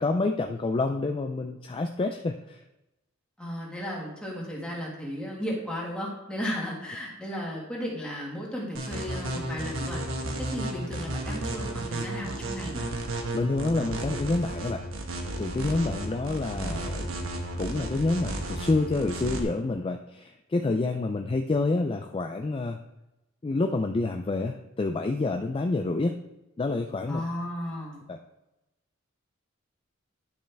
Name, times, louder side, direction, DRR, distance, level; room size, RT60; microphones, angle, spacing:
voice 1, 0.0-2.6 13.3-14.8 15.4-17.1 17.6-22.8 23.4-26.2 26.6-27.2 28.1-28.2, left 3 dB, 25° left, 5 dB, 0.4 m, -28 dB
voice 2, 3.4-10.0 10.4-12.9 27.1-28.0, equal, 5° left, -4 dB, 1.9 m, -34 dB
sound 1, 8.7-19.4, right 1 dB, 80° right, 1.1 m, -33 dB
10.0 x 5.4 x 3.4 m, 0.93 s
head